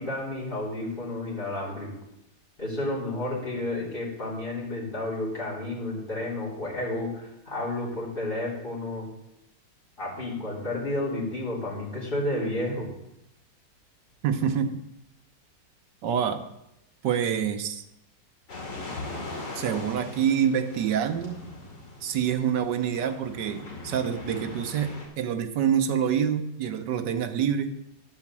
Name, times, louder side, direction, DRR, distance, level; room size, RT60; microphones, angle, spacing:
voice 1, 0.0-1.9 2.6-9.1 10.0-12.9, left 1 dB, 30° left, -5 dB, 3.5 m, -31 dB
voice 2, 14.2-14.8 16.0-16.4 17.0-17.8 19.5-21.4 22.0-27.7, right 8 dB, 75° right, 7 dB, 1.5 m, -26 dB
sound 1, 18.5-25.1, left 2 dB, 65° left, 3.0 m, -40 dB
10.5 x 5.1 x 7.3 m, 0.86 s
omnidirectional pair, 1.9 m